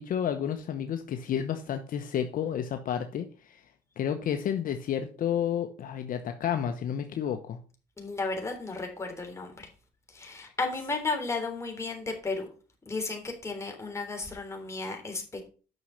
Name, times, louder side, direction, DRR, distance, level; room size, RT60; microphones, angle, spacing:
voice 1, 0.0-3.6 4.0-7.6, left 9 dB, 55° left, 7 dB, 1.0 m, -31 dB
voice 2, 8.0-9.6 10.1-12.5 12.9-15.4, left 3 dB, 15° left, 2 dB, 3.5 m, -34 dB
9.5 x 6.4 x 5.8 m, 0.38 s
cardioid pair, 110°, 17 cm